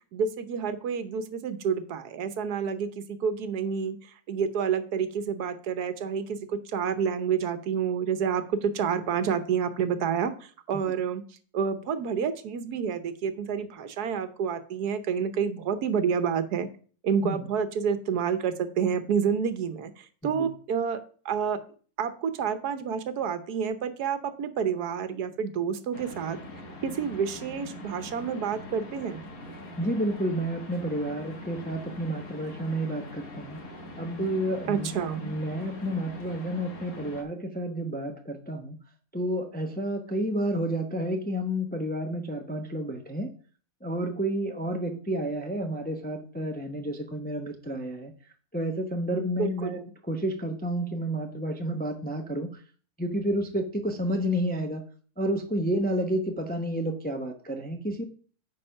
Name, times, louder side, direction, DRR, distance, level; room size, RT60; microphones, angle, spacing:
voice 1, 0.1-11.2 11.5-16.7 17.0-21.6 22.0-26.4 26.8-29.3 34.7-35.3 49.4-49.9, right 7 dB, 80° right, 11 dB, 1.4 m, -29 dB
sound 1, 25.9-37.2, left 1 dB, 65° left, 1.8 m, -43 dB
voice 2, 29.8-33.6 34.0-38.8 39.1-43.3 43.8-48.1 48.5-52.6 53.0-54.8 55.2-58.0, equal, 10° left, 4 dB, 0.5 m, -30 dB
9.7 x 4.2 x 5.6 m, 0.42 s
omnidirectional pair, 1.7 m